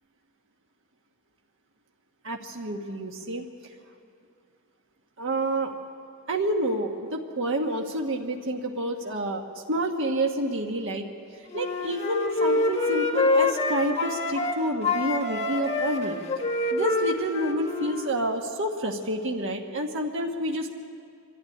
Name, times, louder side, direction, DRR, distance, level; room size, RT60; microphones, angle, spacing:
voice 1, 2.2-3.4 5.2-5.7 6.3-11.0 11.5-16.2 16.7-20.7, right 1 dB, 60° right, 2 dB, 1.4 m, -29 dB
Wind instrument woodwind instrument, 11.5-14.6 14.8-18.1, left 2 dB, 30° left, 1.8 m, -26 dB
24.5 x 12.0 x 9.9 m, 2.4 s
head